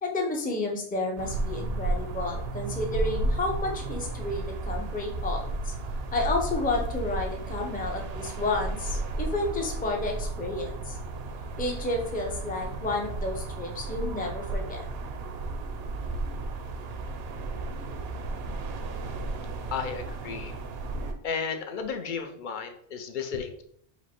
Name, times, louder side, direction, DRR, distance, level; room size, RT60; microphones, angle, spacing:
voice 1, 0.0-5.7 6.1-11.0 11.6-14.8, left 2 dB, 10° left, 1 dB, 0.4 m, -31 dB
sound 1, 1.2-21.1, right 2 dB, 70° right, 0.7 m, -33 dB
voice 2, 19.7-20.5 21.2-23.6, left 5 dB, 60° left, 7 dB, 0.6 m, -33 dB
5.1 x 2.0 x 4.3 m, 0.66 s
omnidirectional pair, 1.1 m